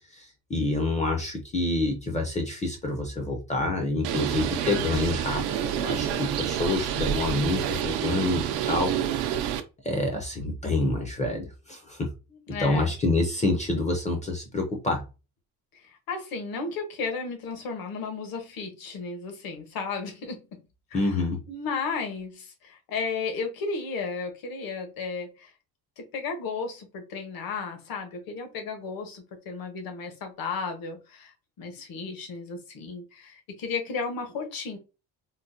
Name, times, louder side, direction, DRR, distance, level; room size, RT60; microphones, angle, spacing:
voice 1, 0.1-9.3 9.8-12.1 12.6-15.0 20.9-21.4, left 2 dB, 20° left, 0.4 m, -27 dB
Bird, 4.0-9.6, right 10 dB, 85° right, 0.6 m, -28 dB
voice 2, 12.5-12.9 16.1-20.5 20.9-21.2 21.5-25.5 26.0-34.8, left 4 dB, 60° left, 1.0 m, -34 dB
3.8 x 2.1 x 2.5 m
cardioid pair, 155°, 38 cm